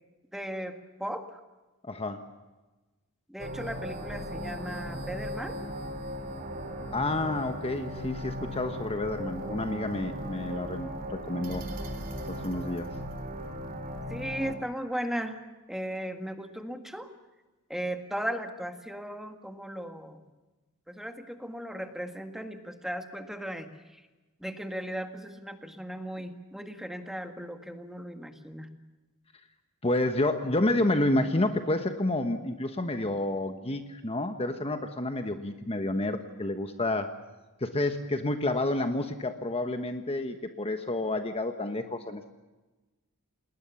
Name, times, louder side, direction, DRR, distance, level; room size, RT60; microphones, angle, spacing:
voice 1, 0.3-1.4 3.3-5.6 14.1-15.4 15.7-17.1 17.7-20.2 20.9-24.0 24.4-28.7, equal, ahead, 6 dB, 1.8 m, -37 dB
voice 2, 1.8-2.2 6.9-11.6 12.3-12.9 29.8-37.1 37.6-42.3, left 2 dB, 25° left, 7 dB, 1.2 m, -29 dB
sound 1, 3.4-14.5, equal, 40° right, 3.5 m, -37 dB
29.0 x 20.0 x 7.1 m, 1.2 s
head